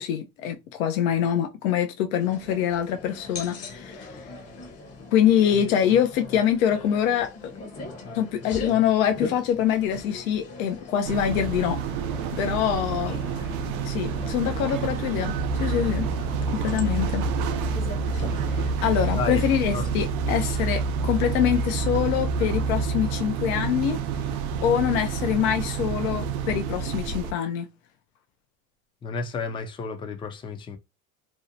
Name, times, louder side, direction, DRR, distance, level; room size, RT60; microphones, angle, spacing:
voice 1, 0.0-4.2 5.1-7.5 8.1-11.8 12.3-13.2 13.8-16.1 16.5-17.3 18.5-24.0 24.6-27.7, left 9 dB, 80° left, 0.6 m, -25 dB
sound 1, 2.2-18.7, left 3 dB, 35° left, 0.8 m, -41 dB
sound 2, 11.0-27.3, right 7 dB, 85° right, 0.5 m, -30 dB
sound 3, 15.4-23.1, right 2 dB, 45° right, 0.6 m, -29 dB
voice 2, 29.0-30.8, left 4 dB, 15° left, 0.3 m, -31 dB
2.6 x 2.1 x 2.6 m
hypercardioid pair, 90°, 41 cm